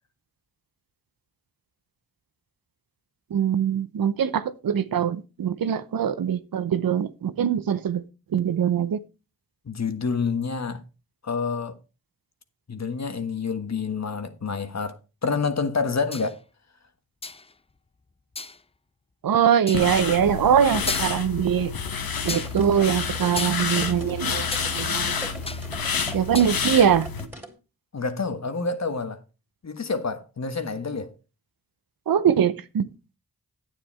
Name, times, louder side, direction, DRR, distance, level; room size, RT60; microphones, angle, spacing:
voice 1, 3.3-8.0 8.3-9.0 19.2-21.7 22.2-25.3 26.1-27.1 32.1-32.9, right 8 dB, 75° right, 0.8 m, -22 dB
voice 2, 9.6-10.8 11.2-11.7 12.7-16.4 27.9-29.2 29.6-31.1, left 4 dB, 50° left, 1.4 m, -28 dB
sound 1, 16.1-16.4 17.2-17.5 18.4-18.6 19.7-19.9 20.5-20.6 20.9-21.4 22.3-22.6 23.4-24.7 25.0-25.7 26.0-26.5, left 3 dB, 15° left, 0.5 m, -34 dB
sound 2, 19.7-27.2, left 6 dB, 80° left, 1.2 m, -29 dB
sound 3, 22.0-27.5, right 2 dB, 5° right, 3.1 m, -41 dB
9.0 x 7.7 x 4.3 m
cardioid pair, 45°, 35 cm